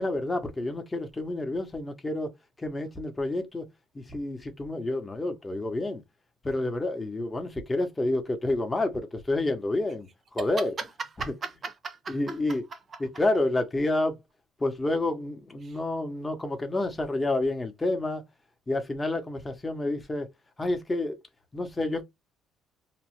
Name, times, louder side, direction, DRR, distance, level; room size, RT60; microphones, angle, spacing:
voice 1, 0.0-2.3 2.6-3.7 3.9-6.0 6.4-10.7 12.1-12.6 13.0-14.2 14.6-18.2 18.7-20.3 20.6-21.2 21.5-22.0, left 2 dB, 15° left, 0.6 m, -29 dB
voice 2, 10.4-12.6 12.9-13.0 15.6-15.8, right 4 dB, 30° right, 0.6 m, -37 dB
2.8 x 2.0 x 2.9 m
cardioid pair, 160°, 0 cm